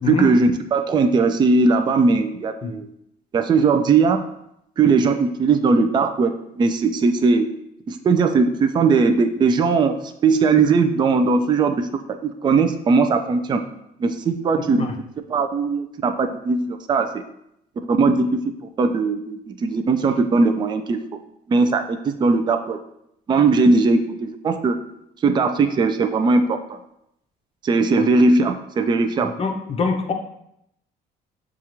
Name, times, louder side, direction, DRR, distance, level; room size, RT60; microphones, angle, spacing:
voice 1, 0.0-2.8 3.3-4.2 4.8-7.5 7.9-10.0 10.2-11.9 12.2-13.6 14.0-14.9 15.3-17.2 17.9-18.5 18.8-21.0 21.5-22.8 23.3-24.8 25.2-26.8 27.6-29.3, right 4 dB, 25° right, 7 dB, 0.3 m, -19 dB
voice 2, 29.4-30.1, left 4 dB, 35° left, 4 dB, 0.6 m, -24 dB
6.3 x 2.4 x 2.9 m, 0.78 s
cardioid pair, 110°, 17 cm